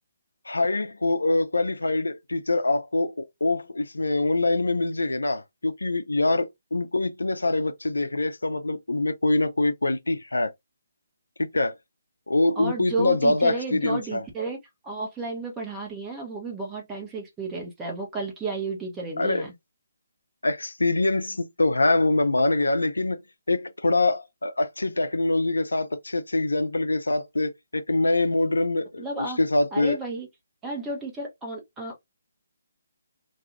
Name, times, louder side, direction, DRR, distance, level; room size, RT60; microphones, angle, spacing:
voice 1, 0.5-10.5 11.4-11.7 12.3-14.2 19.2-19.5 20.4-23.2 23.5-30.0, left 2 dB, 80° left, 0.5 m, -24 dB
voice 2, 12.6-14.6 14.8-19.5 29.0-29.4 29.7-30.3 30.6-32.0, right 3 dB, 10° right, 1.0 m, -32 dB
2.6 x 2.4 x 2.8 m
figure-of-eight pair, 145°, 0 cm